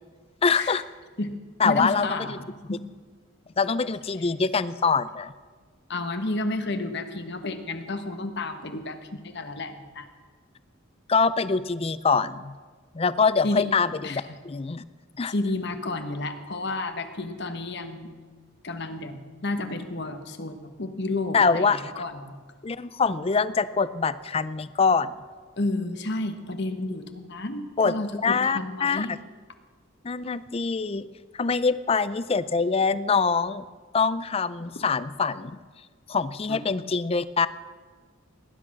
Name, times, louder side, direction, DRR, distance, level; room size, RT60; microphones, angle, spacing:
voice 1, 0.4-0.8 1.6-2.4 3.6-5.3 11.1-12.5 12.9-14.8 15.2-15.3 21.3-22.0 22.6-25.1 27.8-27.9 28.2-29.1 30.0-31.1 31.3-33.6 33.9-35.5 36.1-37.5, left 5 dB, 30° left, 16 dB, 0.4 m, -24 dB
voice 2, 1.6-2.8 5.9-10.1 13.4-13.7 14.0-14.4 15.3-18.1 18.6-22.3 25.6-29.1 34.6-34.7 36.5-36.6, left 2 dB, 55° left, 8 dB, 1.3 m, -31 dB
18.5 x 11.0 x 6.1 m, 1.5 s
head